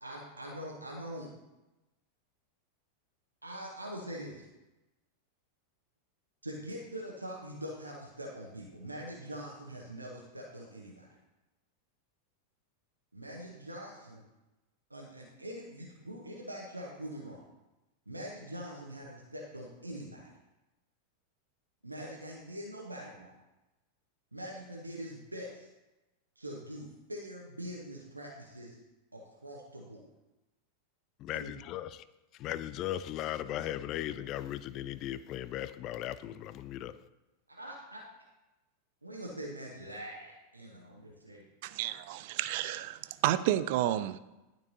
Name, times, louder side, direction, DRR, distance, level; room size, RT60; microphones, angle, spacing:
voice 1, 0.0-1.3 3.4-4.4 6.4-11.1 13.1-14.2 14.9-17.4 18.1-20.3 21.8-23.4 24.3-25.7 26.4-28.8 29.1-30.1 31.3-31.5 37.5-38.0 39.0-41.5, equal, 85° right, 1.0 m, -43 dB
voice 2, 31.2-32.0 32.4-37.0, left 12 dB, 35° left, 0.3 m, -37 dB
voice 3, 41.6-44.2, right 13 dB, 50° right, 0.3 m, -31 dB
12.0 x 4.5 x 2.8 m
figure-of-eight pair, 90°, 0 cm